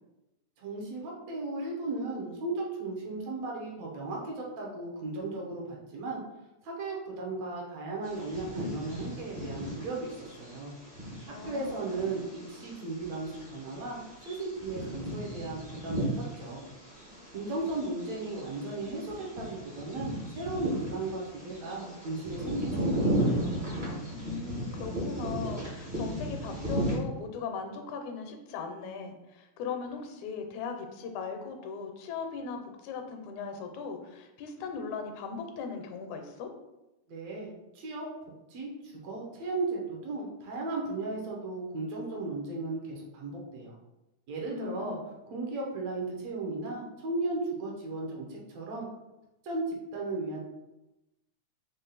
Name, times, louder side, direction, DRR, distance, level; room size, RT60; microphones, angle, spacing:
voice 1, 0.6-6.2 6.6-10.7 11.3-14.0 14.3-23.3 37.1-38.1 38.5-43.8 44.3-45.0 45.3-48.9 49.4-50.4, right 2 dB, 70° right, -2 dB, 2.0 m, -36 dB
Bird vocalization bird call bird song, 8.0-27.0, right 1 dB, 45° right, 0.6 m, -35 dB
voice 2, 11.3-11.8 24.1-36.5 44.5-45.1, left 5 dB, 80° left, 5 dB, 1.9 m, -39 dB
5.4 x 2.4 x 3.9 m, 0.97 s
omnidirectional pair, 3.4 m